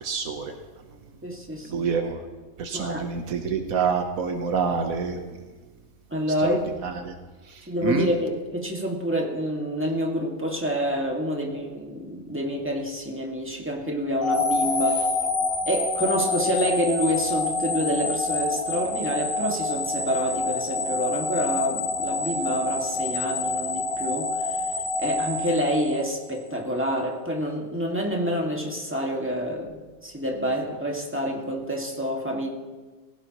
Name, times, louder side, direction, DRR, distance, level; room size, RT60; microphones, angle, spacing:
voice 1, 0.0-0.5 1.7-2.2 2.6-5.2 6.4-6.5 6.8-7.1 7.5-8.1, right 5 dB, 85° right, 5 dB, 1.5 m, -27 dB
voice 2, 1.2-1.9 2.7-3.1 6.1-6.7 7.7-15.1 15.7-24.6 25.0-32.5, equal, 10° right, -1 dB, 2.0 m, -27 dB
sound 1, 14.2-26.4, left 3 dB, 80° left, 3.3 m, -27 dB
20.5 x 16.5 x 3.1 m, 1.3 s
omnidirectional pair, 1.4 m